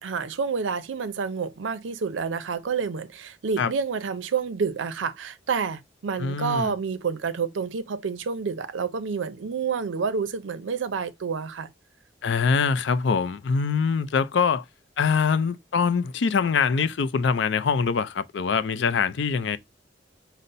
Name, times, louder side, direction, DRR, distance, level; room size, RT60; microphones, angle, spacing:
voice 1, 0.0-11.7, right 5 dB, 85° right, 0.5 m, -29 dB
voice 2, 6.2-6.7 12.2-14.6 15.0-19.6, left 5 dB, 70° left, 0.4 m, -24 dB
5.3 x 2.1 x 3.9 m
head